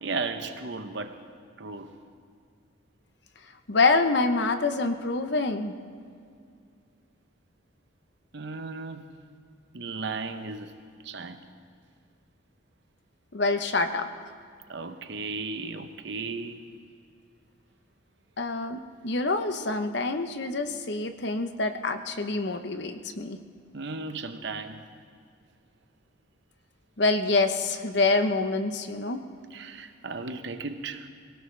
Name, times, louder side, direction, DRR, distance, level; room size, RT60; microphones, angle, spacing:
voice 1, 0.0-1.2 1.6-1.9 8.3-9.1 9.7-10.7 11.0-11.4 14.7-16.7 23.7-24.8 29.5-31.1, right 4 dB, 60° right, 8 dB, 0.9 m, -35 dB
voice 2, 3.7-5.7 13.3-14.1 18.4-23.4 27.0-29.2, left 3 dB, 55° left, 7 dB, 0.9 m, -26 dB
21.5 x 18.0 x 3.3 m, 2.3 s
head